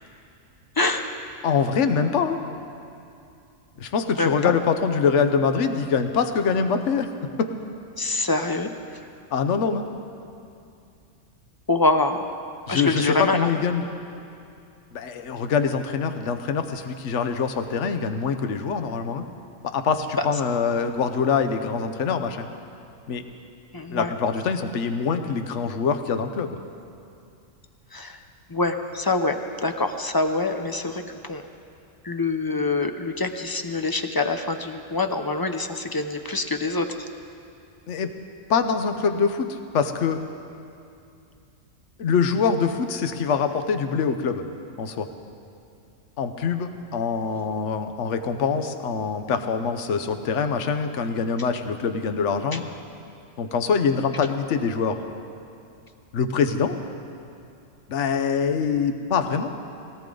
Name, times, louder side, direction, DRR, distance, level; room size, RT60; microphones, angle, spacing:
voice 1, 0.8-1.1 4.2-4.5 8.0-9.0 11.7-12.3 12.7-13.5 20.2-20.3 23.7-24.1 27.9-28.2 28.5-31.4 32.0-37.1 52.5-52.6, left 3 dB, 25° left, 6 dB, 0.5 m, -25 dB
voice 2, 1.4-2.4 3.8-7.5 9.3-9.8 12.7-13.0 13.3-13.9 14.9-19.2 19.6-22.5 23.1-23.2 23.9-26.6 37.9-38.1 38.5-40.2 42.0-44.4 44.8-45.1 46.2-52.6 53.4-55.0 56.1-56.8 57.9-59.5, left 6 dB, 65° left, 8 dB, 1.2 m, -24 dB
21.0 x 17.5 x 3.9 m, 2.5 s
omnidirectional pair, 1.4 m